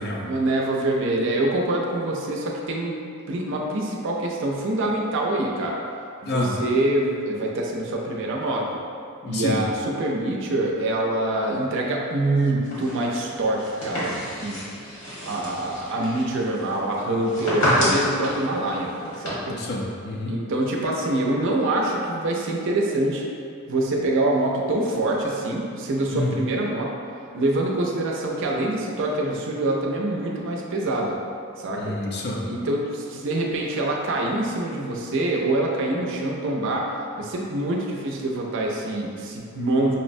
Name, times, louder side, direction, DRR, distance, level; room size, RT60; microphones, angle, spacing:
voice 1, 0.2-3.0 3.3-5.8 6.2-8.8 9.3-14.7 15.2-19.6 20.3-23.2 23.7-26.9 27.3-31.2 31.6-31.9 32.5-36.9 37.2-39.9, right 1 dB, 60° right, -1 dB, 0.5 m, -25 dB
voice 2, 9.2-9.7 19.5-20.4 26.1-26.4 31.8-32.4, left 1 dB, 50° left, -1 dB, 0.5 m, -28 dB
sound 1, 12.6-19.3, equal, 75° left, 1.3 m, -29 dB
5.3 x 2.1 x 2.6 m, 2.5 s
head